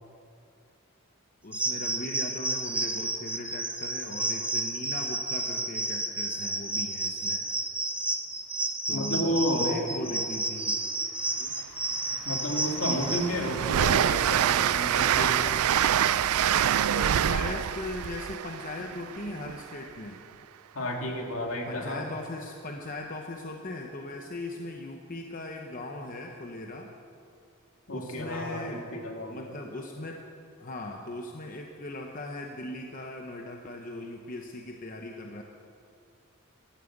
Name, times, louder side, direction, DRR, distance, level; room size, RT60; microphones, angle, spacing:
voice 1, 1.4-7.4 8.9-10.8 11.4-11.5 16.9-20.2 21.7-26.9 27.9-28.9 29.3-30.2 30.6-35.4, left 2 dB, 40° left, 2 dB, 0.9 m, -39 dB
sound 1, 1.5-13.3, right 2 dB, 5° right, 0.7 m, -31 dB
voice 2, 8.9-10.0 12.2-15.6 20.7-22.1 27.9-29.5, equal, 70° left, 1 dB, 2.2 m, -31 dB
Train, 11.6-11.7 12.1-19.8, right 10 dB, 80° right, 0.4 m, -26 dB
14.0 x 12.0 x 7.2 m, 2.4 s
head